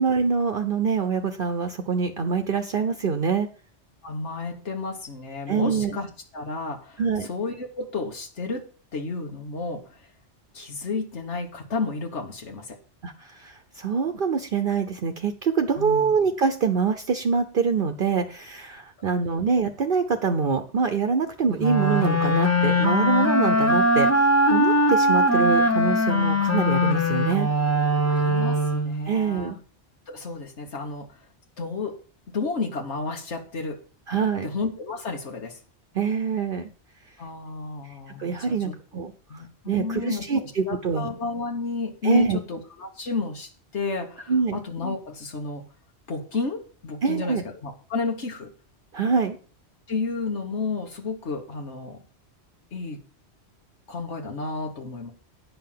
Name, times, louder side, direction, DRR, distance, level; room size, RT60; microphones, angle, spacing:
voice 1, 0.0-3.5 5.5-6.0 7.0-7.3 13.0-27.5 29.1-29.6 34.1-34.5 35.9-36.7 38.2-41.1 42.0-42.4 44.3-44.6 47.0-47.4 48.9-49.4, right 5 dB, 55° right, 7 dB, 0.9 m, -25 dB
voice 2, 4.0-10.1 10.5-12.8 15.7-16.1 19.0-19.1 28.0-29.6 30.1-31.3 31.6-33.8 34.4-35.6 37.2-38.8 39.3-45.6 46.1-48.5 49.9-52.0 52.7-53.0 53.9-55.1, left 3 dB, 80° left, 2 dB, 1.7 m, -32 dB
sound 1, 21.6-29.1, equal, 15° left, 0.9 m, -21 dB
9.5 x 5.7 x 7.5 m, 0.38 s
omnidirectional pair, 1.2 m